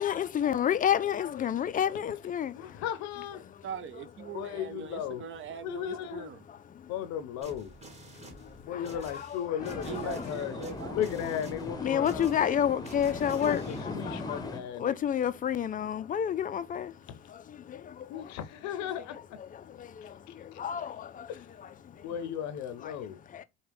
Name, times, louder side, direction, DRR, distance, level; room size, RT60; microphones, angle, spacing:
voice 1, 0.0-2.7 6.5-6.9 8.1-9.4 9.9-10.3 10.7-10.8 11.8-14.5 14.8-16.9 17.3-18.3 19.5-21.3 21.6-22.1 22.8-22.9 23.3-23.4, left 9 dB, 30° left, 0.4 m, -31 dB
voice 2, 2.5-3.4 4.3-5.3 5.6-6.3 6.9-7.7 8.6-12.5 13.4-15.0 18.1-19.2 21.3-21.4 22.0-23.2, left 10 dB, 65° left, 0.7 m, -36 dB
voice 3, 3.6-6.4 9.8-11.0, right 8 dB, 40° right, 0.7 m, -41 dB
sound 1, 7.4-13.8, right 2 dB, 20° right, 1.6 m, -50 dB
sound 2, 9.6-14.6, left 2 dB, 15° left, 0.8 m, -39 dB
4.6 x 2.3 x 3.4 m
supercardioid pair, 95°, 30 cm